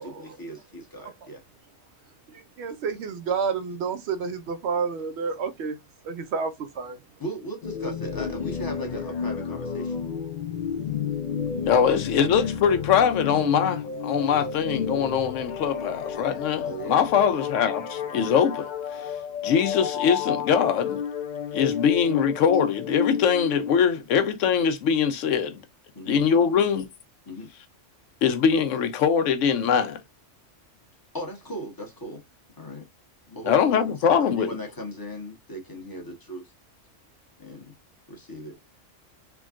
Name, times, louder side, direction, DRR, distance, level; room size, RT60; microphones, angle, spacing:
voice 1, 0.0-1.4 7.2-10.0 11.9-12.2 16.6-17.1 21.5-21.7 25.9-26.2 27.3-27.5 31.1-32.2 32.6-32.9 33.3-36.4 37.4-37.6 38.1-38.6, equal, 20° left, 0.9 m, -37 dB
voice 2, 2.6-5.8 6.1-7.0, right 5 dB, 70° right, 0.8 m, -29 dB
sound 1, 7.6-23.8, left 7 dB, 55° left, 0.5 m, -31 dB
voice 3, 11.7-19.1 19.4-21.0 21.5-25.6 26.1-26.9 28.2-30.0 33.5-34.5, left 7 dB, 80° left, 0.9 m, -22 dB
3.5 x 2.2 x 2.3 m
omnidirectional pair, 1.3 m